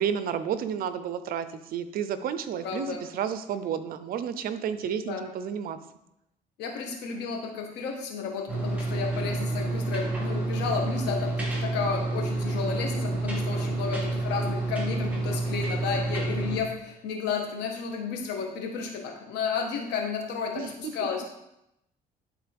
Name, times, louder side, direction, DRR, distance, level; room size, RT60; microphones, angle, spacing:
voice 1, 0.0-5.8 20.6-20.9, right 8 dB, 60° right, 12 dB, 0.6 m, -31 dB
voice 2, 2.6-3.0 5.1-5.2 6.6-21.2, left 6 dB, 85° left, 2 dB, 1.4 m, -32 dB
sound 1, 8.5-16.6, right 2 dB, 10° right, 2.0 m, -29 dB
11.0 x 3.9 x 3.4 m, 0.83 s
cardioid pair, 110°, 17 cm